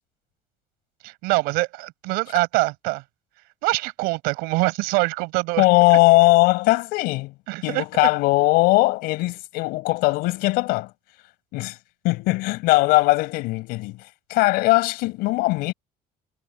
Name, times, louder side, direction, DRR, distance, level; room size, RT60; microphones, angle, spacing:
voice 1, 1.0-3.0 3.6-5.6 5.9-6.0 7.5-7.9, right 24 dB, 90° right, 5.2 m, -24 dB
voice 2, 5.6-7.3 7.6-10.9 11.5-11.8 12.0-14.0 14.3-15.7, left 21 dB, 80° left, 5.7 m, -19 dB
cardioid pair, 140°, 15 cm